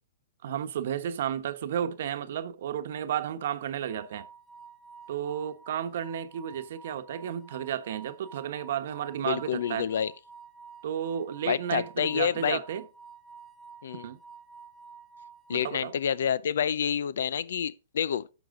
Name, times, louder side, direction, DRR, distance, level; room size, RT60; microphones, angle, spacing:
voice 1, 0.4-4.3 5.1-9.9 10.8-12.8 14.0-14.2 15.5-15.9, right 9 dB, 65° right, 1.1 m, -32 dB
sound 1, 3.9-16.1, right 5 dB, 15° right, 1.0 m, -50 dB
voice 2, 9.2-10.1 11.5-12.6 13.8-14.1 15.5-18.3, left 8 dB, 75° left, 0.6 m, -28 dB
10.5 x 6.8 x 3.7 m
hypercardioid pair, 140°, 0 cm